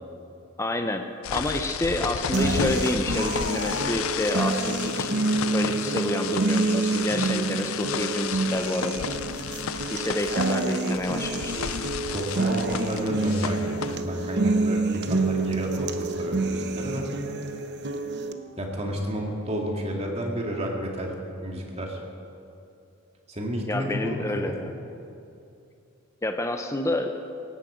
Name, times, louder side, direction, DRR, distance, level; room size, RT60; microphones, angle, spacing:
voice 1, 0.6-1.0 1.3-5.1 5.5-9.0 9.9-11.5 23.7-24.7 26.2-27.1, left 1 dB, 15° left, 5 dB, 0.6 m, -29 dB
sound 1, 1.2-14.0, left 7 dB, 75° left, 0.5 m, -32 dB
sound 2, 2.3-18.3, right 3 dB, 50° right, 0.9 m, -28 dB
sound 3, 4.6-15.4 15.7-19.6, equal, 40° left, 2.2 m, -49 dB
voice 2, 12.1-17.1 18.6-21.1 21.4-22.0 23.3-24.6, equal, 30° right, 0 dB, 2.3 m, -31 dB
17.5 x 15.5 x 5.1 m, 2.7 s
head